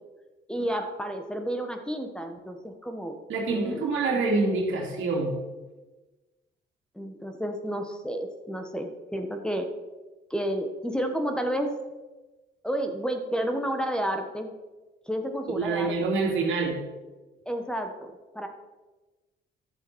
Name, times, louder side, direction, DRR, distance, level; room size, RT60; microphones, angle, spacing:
voice 1, 0.5-3.2 3.5-3.9 6.9-9.7 10.3-11.7 12.6-14.5 15.1-15.9 17.4-18.5, equal, 5° left, 5 dB, 1.3 m, -31 dB
voice 2, 3.3-5.4 15.6-16.8, right 3 dB, 80° right, 1 dB, 2.5 m, -26 dB
11.5 x 7.6 x 4.6 m, 1.2 s
cardioid pair, 90°, 20 cm